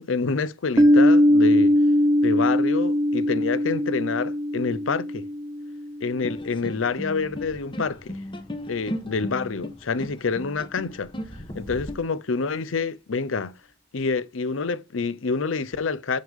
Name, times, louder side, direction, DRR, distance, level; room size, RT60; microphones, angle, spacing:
voice 1, 0.0-1.8 2.2-5.3 6.0-8.2 8.7-11.1 11.5-13.5 13.9-16.2, left 4 dB, 80° left, 0.7 m, -27 dB
Piano, 0.8-6.1, left 1 dB, 15° right, 0.9 m, -20 dB
sound 1, 6.2-11.9, equal, 25° left, 1.2 m, -36 dB
6.7 x 6.2 x 3.6 m
head